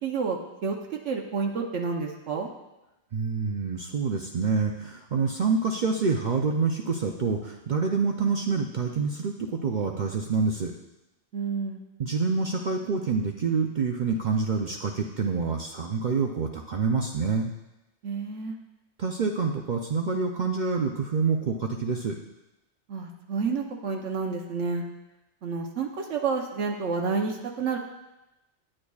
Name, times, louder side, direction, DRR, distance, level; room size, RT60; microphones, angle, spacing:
voice 1, 0.0-2.5 11.3-11.8 18.0-18.6 22.9-24.8 25.4-27.8, right 5 dB, 75° right, 2 dB, 1.1 m, -30 dB
voice 2, 3.1-10.7 12.0-17.5 19.0-22.2, right 4 dB, 50° right, 1 dB, 0.6 m, -27 dB
9.7 x 8.8 x 2.3 m, 0.97 s
omnidirectional pair, 1.2 m